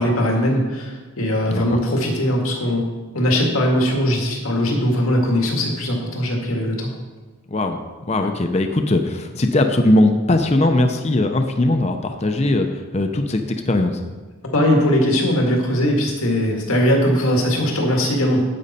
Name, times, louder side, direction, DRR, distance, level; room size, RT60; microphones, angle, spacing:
voice 1, 0.0-2.9 3.1-6.9 14.5-18.4, equal, 85° left, 0 dB, 2.0 m, -20 dB
voice 2, 7.5-7.8 8.1-14.0, left 1 dB, 30° left, 5 dB, 0.6 m, -19 dB
10.5 x 8.6 x 4.2 m, 1.3 s
head